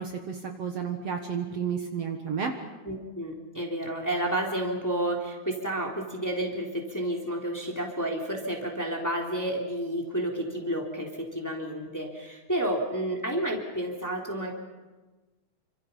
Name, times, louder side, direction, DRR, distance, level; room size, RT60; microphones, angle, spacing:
voice 1, 0.0-2.5, right 6 dB, 55° right, 3 dB, 2.4 m, -31 dB
voice 2, 2.8-14.5, right 1 dB, 5° left, 0 dB, 3.1 m, -30 dB
28.0 x 25.5 x 5.7 m, 1.2 s
omnidirectional pair, 3.6 m